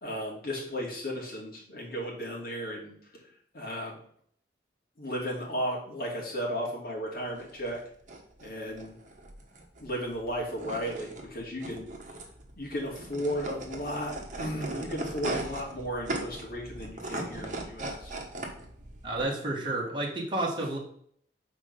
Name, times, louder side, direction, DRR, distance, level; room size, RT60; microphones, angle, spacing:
voice 1, 0.0-2.9 3.5-4.0 5.0-7.8 8.4-9.0 9.8-11.9 12.6-18.1, equal, 55° left, -3 dB, 2.5 m, -35 dB
sound 1, 7.3-19.2, right 2 dB, 45° right, 1.3 m, -39 dB
voice 2, 19.0-20.8, right 2 dB, 25° right, -3 dB, 1.6 m, -30 dB
6.2 x 4.4 x 5.3 m, 0.64 s
head